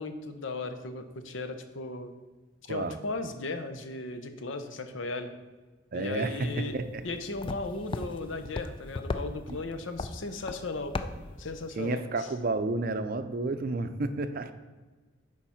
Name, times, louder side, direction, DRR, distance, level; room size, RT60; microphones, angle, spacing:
voice 1, 0.0-2.1 2.7-5.3 5.9-6.8 7.0-11.1 11.4-12.3, left 3 dB, 80° left, 8 dB, 0.7 m, -36 dB
voice 2, 5.9-7.0 9.5-9.6 11.8-14.5, right 2 dB, 50° right, 10 dB, 0.5 m, -31 dB
sound 1, 6.5-11.7, left 3 dB, 25° left, 0.3 m, -38 dB
7.2 x 4.7 x 5.6 m, 1.3 s
head